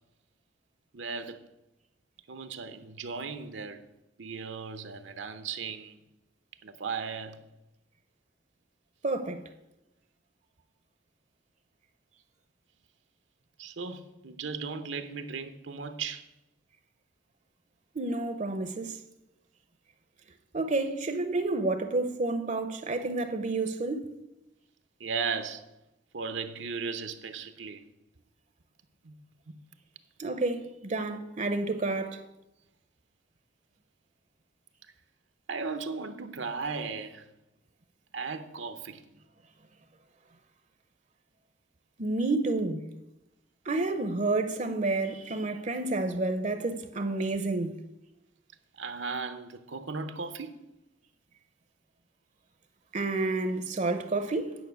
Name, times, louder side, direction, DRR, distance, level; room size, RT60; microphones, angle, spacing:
voice 1, 0.9-1.4 2.3-3.8 4.2-6.0 6.6-7.4 13.6-16.3 25.0-25.6 26.1-27.8 29.0-29.1 29.5-29.6 35.5-37.3 38.1-39.0 42.5-42.6 48.8-50.5, right 5 dB, 75° right, 0.8 m, -36 dB
voice 2, 9.0-9.4 17.9-18.9 20.5-24.1 30.2-32.2 42.0-42.8 43.7-47.8 52.9-54.6, right 2 dB, 40° right, 0.7 m, -30 dB
9.3 x 5.5 x 8.0 m
head